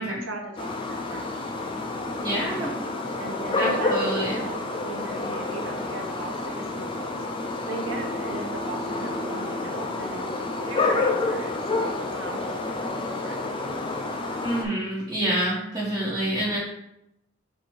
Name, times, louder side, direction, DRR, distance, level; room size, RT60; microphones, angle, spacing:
voice 1, 0.0-1.5 3.2-13.4, right 2 dB, 70° right, 0 dB, 1.0 m, -38 dB
sound 1, 0.6-14.6, left 2 dB, 25° left, 0.4 m, -29 dB
voice 2, 2.2-2.7 3.5-4.4 14.4-16.6, right 1 dB, 20° right, -12 dB, 1.2 m, -27 dB
4.5 x 2.6 x 4.4 m, 0.82 s
head